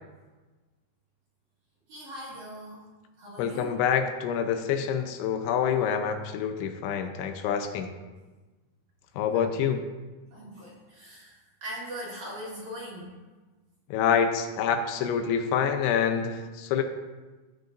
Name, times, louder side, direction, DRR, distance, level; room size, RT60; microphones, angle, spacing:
voice 1, 1.9-2.9 3.2-3.8 9.3-9.6 10.3-13.1, equal, 50° right, -6 dB, 2.8 m, -41 dB
voice 2, 3.4-7.9 9.2-9.8 13.9-16.8, left 7 dB, 85° left, 6 dB, 3.1 m, -26 dB
15.5 x 7.7 x 2.6 m, 1.2 s
omnidirectional pair, 5.2 m